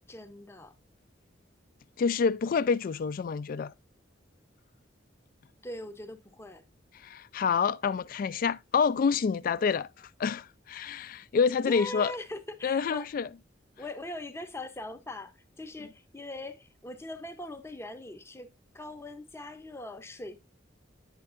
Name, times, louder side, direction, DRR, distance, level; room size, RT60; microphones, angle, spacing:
voice 1, 0.1-0.7 5.6-6.6 11.6-13.1 13.8-20.4, left 1 dB, 15° left, 0.6 m, -41 dB
voice 2, 2.0-3.7 6.9-12.1 12.6-13.3, left 6 dB, 50° left, 0.3 m, -28 dB
8.8 x 6.4 x 2.5 m
head